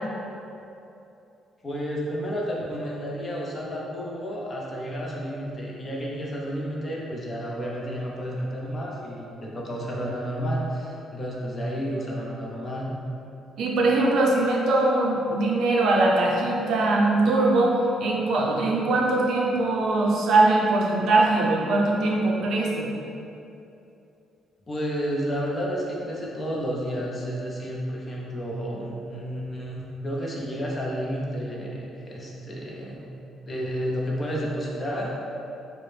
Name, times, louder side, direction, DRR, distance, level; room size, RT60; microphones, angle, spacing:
voice 1, 1.6-12.9 24.7-33.1 33.5-35.1, equal, 20° left, -3 dB, 0.4 m, -31 dB
voice 2, 13.6-22.9, right 2 dB, 55° right, -2 dB, 0.5 m, -21 dB
4.6 x 2.0 x 3.1 m, 2.8 s
cardioid pair, 180°, 0 cm